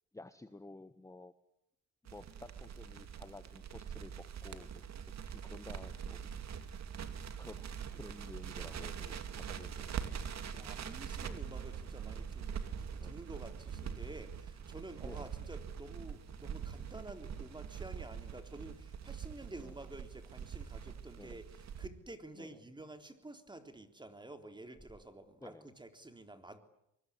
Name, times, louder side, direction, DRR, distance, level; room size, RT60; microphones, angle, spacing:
voice 1, 0.1-1.3 2.0-4.8 5.2-6.2 7.4-10.1 13.0-13.2 15.0-15.3 19.6-19.8 21.2-21.4 22.3-22.6 25.4-25.7, left 2 dB, 10° left, 11 dB, 1.3 m, -52 dB
Crackle, 2.0-21.9, right 7 dB, 60° right, 2.7 m, -43 dB
voice 2, 10.5-12.5 12.8-26.6, right 2 dB, 15° right, 7 dB, 3.5 m, -50 dB
24.5 x 22.0 x 9.9 m, 0.81 s
cardioid pair, 90°, 30 cm